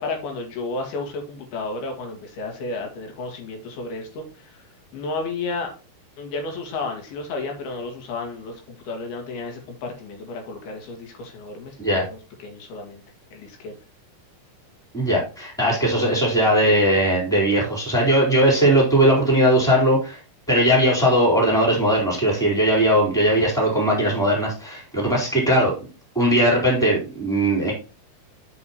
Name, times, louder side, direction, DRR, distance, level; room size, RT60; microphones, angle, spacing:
voice 1, 0.0-4.6 4.9-5.7 6.2-13.0 13.3-13.7, left 3 dB, 90° left, 3 dB, 3.9 m, -32 dB
voice 2, 14.9-20.2 20.5-25.7 26.1-27.7, right 1 dB, ahead, -3 dB, 3.6 m, -19 dB
10.5 x 6.5 x 3.0 m, 0.32 s
omnidirectional pair, 4.3 m